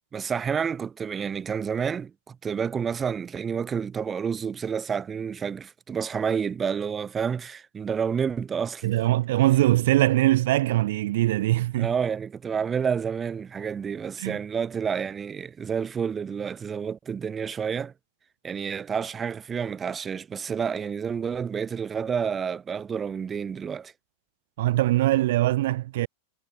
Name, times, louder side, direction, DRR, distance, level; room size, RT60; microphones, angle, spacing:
voice 1, 0.1-8.9 11.8-17.9 18.4-23.9, right 7 dB, 20° right, 1.8 m, -29 dB
voice 2, 8.8-11.9 14.2-14.4 24.6-26.1, right 16 dB, 55° right, 1.4 m, -22 dB
figure-of-eight pair, 90°, 0 cm